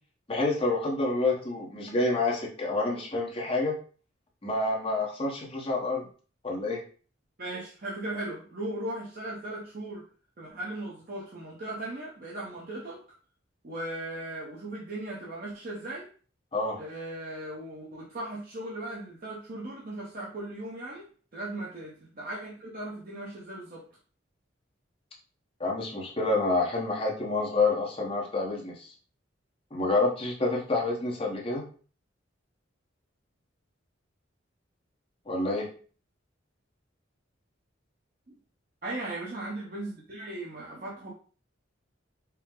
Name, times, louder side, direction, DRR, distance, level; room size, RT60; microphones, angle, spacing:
voice 1, 0.3-3.8 4.4-6.1 6.4-6.8 16.5-16.8 25.6-28.9 29.7-31.7 35.3-35.7, left 2 dB, 30° left, -3 dB, 0.9 m, -28 dB
voice 2, 7.4-10.0 10.4-13.0 13.6-16.1 16.8-21.1 21.3-23.8 38.3-38.4 38.8-41.1, right 1 dB, 45° right, -5 dB, 0.8 m, -37 dB
4.5 x 2.1 x 3.7 m, 0.41 s
head